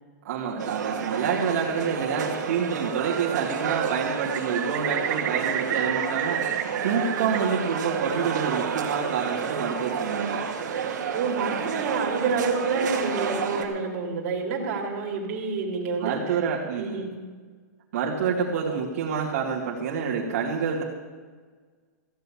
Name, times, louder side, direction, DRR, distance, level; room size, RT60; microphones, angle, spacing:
voice 1, 0.2-6.5 6.8-10.4 16.0-17.1 17.9-20.8, right 6 dB, 60° right, -5 dB, 2.2 m, -27 dB
sound 1, 0.6-13.6, right 7 dB, 85° right, 1.9 m, -30 dB
Bird, 2.8-3.4 3.6-7.4 7.7-8.5, right 10 dB, 25° right, 0.8 m, -32 dB
voice 2, 11.1-16.1 16.8-17.1, right 4 dB, 45° right, -1 dB, 2.6 m, -28 dB
15.0 x 6.7 x 8.5 m, 1.5 s
supercardioid pair, 165°, 9 cm